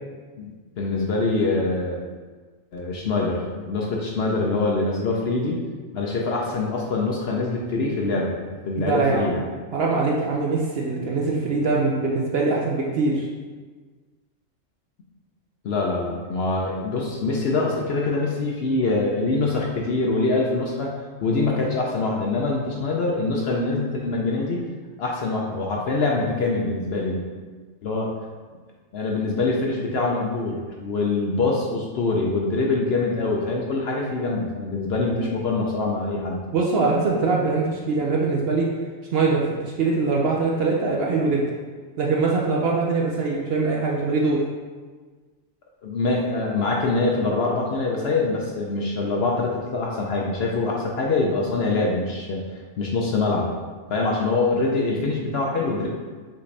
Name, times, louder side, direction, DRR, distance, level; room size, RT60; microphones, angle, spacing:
voice 1, 0.4-2.0 2.7-5.6 5.9-8.3 8.7-9.4 15.6-20.9 21.2-24.6 25.0-27.2 27.8-28.1 28.9-36.4 45.8-52.5 52.8-53.5 53.9-55.9, left 3 dB, 60° left, -1 dB, 0.7 m, -24 dB
voice 2, 8.8-9.3 9.7-13.3 36.5-38.7 39.1-41.4 42.0-44.4, right 3 dB, 60° right, -3 dB, 0.7 m, -22 dB
5.6 x 2.6 x 3.2 m, 1.4 s
omnidirectional pair, 1.4 m